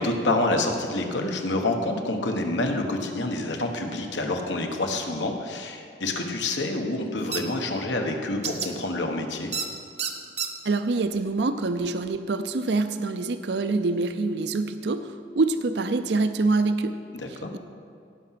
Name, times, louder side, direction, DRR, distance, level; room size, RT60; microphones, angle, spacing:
voice 1, 0.0-9.5 17.1-17.5, left 2 dB, 90° left, 3 dB, 1.3 m, -27 dB
sound 1, 7.3-7.4 8.4-8.7 9.5-9.7 10.0-10.5, right 6 dB, 35° right, 0.8 m, -28 dB
voice 2, 10.6-15.1 15.4-17.0, right 3 dB, 70° right, 10 dB, 0.5 m, -25 dB
17.0 x 5.9 x 5.9 m, 2.6 s
head